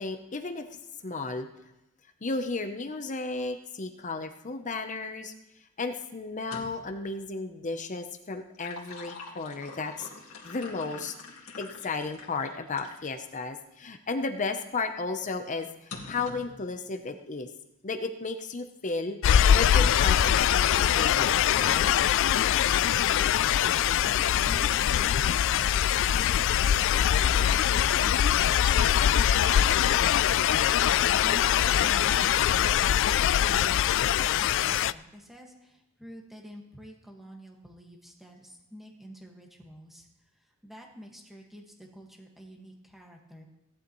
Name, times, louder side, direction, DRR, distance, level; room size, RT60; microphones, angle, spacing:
voice 1, 0.0-1.5 2.2-5.3 5.8-10.1 10.4-11.1 11.6-17.5 17.8-19.2 19.5-21.9, left 3 dB, 35° left, 7 dB, 0.8 m, -34 dB
sound 1, 6.3-7.0 8.3-13.2 13.8-13.9 15.9-16.6, left 4 dB, 85° left, 2.1 m, -45 dB
sound 2, 19.2-34.9, left 10 dB, 65° left, 0.3 m, -23 dB
voice 2, 22.9-23.3 23.6-28.8 29.0-43.4, equal, ahead, 0 dB, 1.7 m, -48 dB
17.0 x 11.0 x 3.1 m, 0.90 s
head